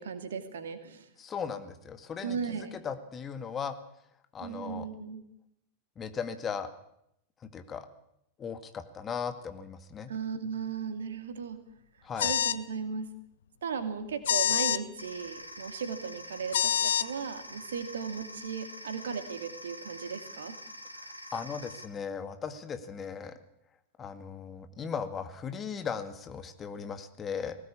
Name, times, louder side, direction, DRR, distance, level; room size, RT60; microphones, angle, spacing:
voice 1, 0.0-1.1 2.2-2.7 4.4-5.3 10.1-11.6 12.2-13.1 13.6-20.6, right 6 dB, 65° right, 9 dB, 2.5 m, -36 dB
voice 2, 1.2-2.4 2.8-3.8 4.3-4.9 6.0-6.7 7.5-7.9 8.4-10.1 12.0-12.3 21.3-23.3 24.0-27.5, left 6 dB, 25° left, 9 dB, 2.0 m, -37 dB
sound 1, 12.2-12.6 14.2-14.8 16.5-17.1, left 9 dB, 60° left, 0.8 m, -26 dB
sound 2, 15.0-21.8, equal, 85° right, 2.5 m, -46 dB
20.5 x 18.0 x 8.6 m, 0.78 s
figure-of-eight pair, 90°, 0 cm